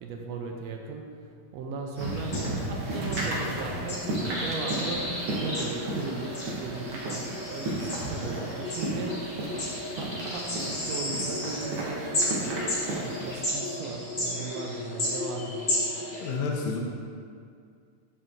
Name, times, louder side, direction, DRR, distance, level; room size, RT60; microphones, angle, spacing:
voice 1, 0.0-1.1 1.5-4.2 4.4-9.3 10.0-15.7, right 3 dB, 75° right, 2 dB, 1.6 m, -37 dB
sound 1, 2.0-16.3, left 1 dB, 30° left, 1.5 m, -34 dB
sound 2, 2.0-13.4, right 2 dB, 60° right, 1.9 m, -34 dB
voice 2, 16.2-16.8, left 4 dB, 75° left, -1 dB, 1.9 m, -29 dB
12.0 x 4.6 x 2.6 m, 2.2 s
omnidirectional pair, 3.3 m